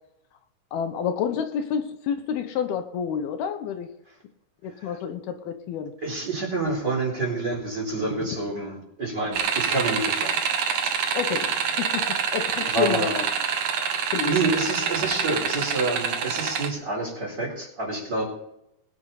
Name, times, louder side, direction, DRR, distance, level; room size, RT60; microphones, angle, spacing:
voice 1, 0.7-3.9 4.6-5.9 11.1-12.1 12.3-13.2 14.1-14.4, left 8 dB, 75° left, 7 dB, 3.0 m, -29 dB
voice 2, 6.0-10.4 10.8-10.9 12.7-13.2 14.2-18.3, right 3 dB, 25° right, -2 dB, 4.4 m, -28 dB
sound 1, 9.3-16.7, right 6 dB, 60° right, 1.7 m, -26 dB
21.0 x 9.5 x 4.1 m, 0.82 s
omnidirectional pair, 4.5 m